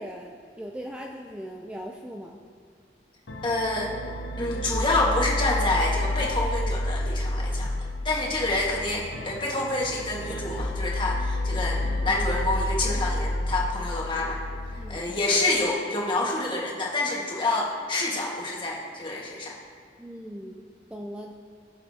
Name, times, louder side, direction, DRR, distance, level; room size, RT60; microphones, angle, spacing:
voice 1, 0.0-2.4 11.6-11.7 14.7-15.1 20.0-21.3, equal, 5° right, 1 dB, 0.4 m, -39 dB
sound 1, 3.3-15.0, left 1 dB, 90° left, 0.8 m, -30 dB
voice 2, 3.4-3.9 4.4-14.4 14.9-19.5, left 2 dB, 25° left, -3 dB, 1.6 m, -27 dB
20.5 x 6.9 x 2.8 m, 2.1 s
head